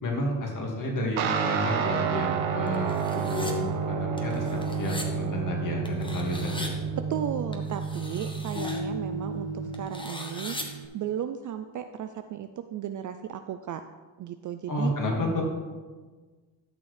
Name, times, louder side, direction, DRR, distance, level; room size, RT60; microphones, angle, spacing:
voice 1, 0.0-4.4 4.8-6.7 14.7-15.4, left 1 dB, 40° left, 0 dB, 2.2 m, -31 dB
Guitar, 1.2-10.9, right 6 dB, 75° right, 1.2 m, -30 dB
sound 1, 2.7-3.5 4.2-5.0 5.8-6.7 7.5-8.8 9.7-10.6, left 1 dB, 10° left, 1.2 m, -40 dB
voice 2, 7.0-13.8 14.2-14.9, right 10 dB, 40° right, 8 dB, 0.4 m, -35 dB
sound 2, 8.5-11.7, left 1 dB, 70° left, 2.0 m, -39 dB
12.5 x 6.0 x 3.4 m, 1.4 s
cardioid pair, 90°, 48 cm